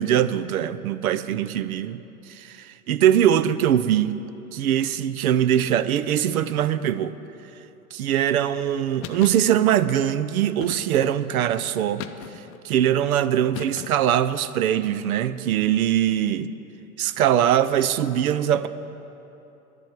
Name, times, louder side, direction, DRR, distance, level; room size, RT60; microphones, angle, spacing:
voice 1, 0.0-4.2 4.5-7.2 7.9-12.1 12.6-16.5 17.0-18.7, right 10 dB, 65° right, 0.6 m, -22 dB
sound 1, 9.0-9.5 10.6-11.2 12.0-12.6 13.5-14.2, left 10 dB, 30° left, 0.6 m, -37 dB
11.0 x 7.6 x 9.1 m
hypercardioid pair, 105°, 46 cm